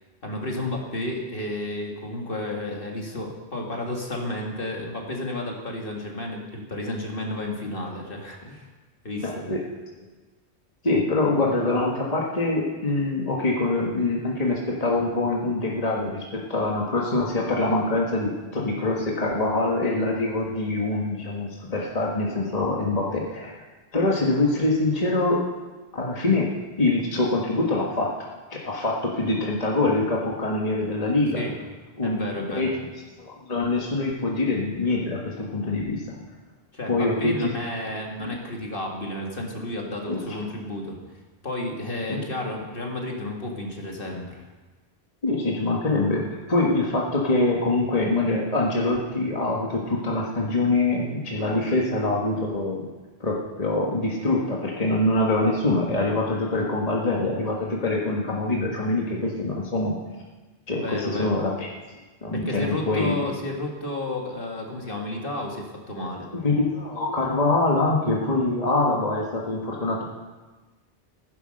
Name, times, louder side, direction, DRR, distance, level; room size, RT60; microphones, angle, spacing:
voice 1, 0.2-8.7 9.0-9.6 31.3-31.5 32.0-32.7 36.7-41.0 41.4-44.5 60.7-61.4 62.3-66.3, left 1 dB, 55° left, 0 dB, 2.3 m, -32 dB
voice 2, 9.2-9.6 10.8-23.6 23.9-25.5 25.9-31.4 32.0-32.2 32.5-32.7 33.2-36.0 36.9-37.5 40.1-40.2 42.1-42.2 45.2-52.9 53.2-60.0 60.7-61.7 62.2-63.1 66.3-70.0, left 2 dB, 35° left, -2 dB, 1.6 m, -24 dB
15.0 x 10.0 x 6.5 m, 1.2 s
omnidirectional pair, 1.1 m